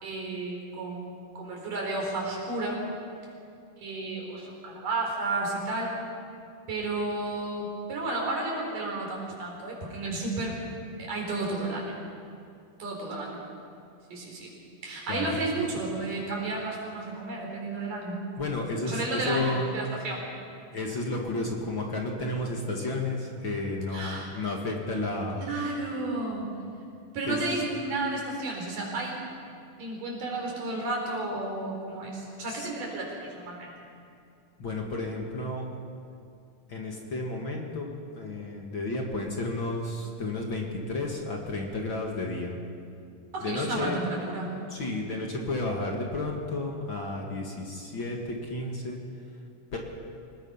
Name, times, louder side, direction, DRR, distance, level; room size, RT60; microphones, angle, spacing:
voice 1, 0.0-2.8 3.8-5.9 6.7-10.5 11.0-12.0 12.8-13.4 14.1-14.5 14.8-18.2 18.8-20.2 23.9-24.3 25.3-26.5 27.1-29.1 29.8-33.7 43.3-44.5, right 2 dB, 80° right, -1 dB, 5.9 m, -32 dB
voice 2, 18.4-19.7 20.7-25.4 27.2-27.4 32.5-32.7 34.6-35.7 36.7-37.9 38.1-42.5 43.4-44.0 44.7-49.0 49.7-49.8, left 2 dB, 40° left, 0 dB, 2.4 m, -32 dB
25.5 x 19.5 x 5.7 m, 2.4 s
omnidirectional pair, 3.7 m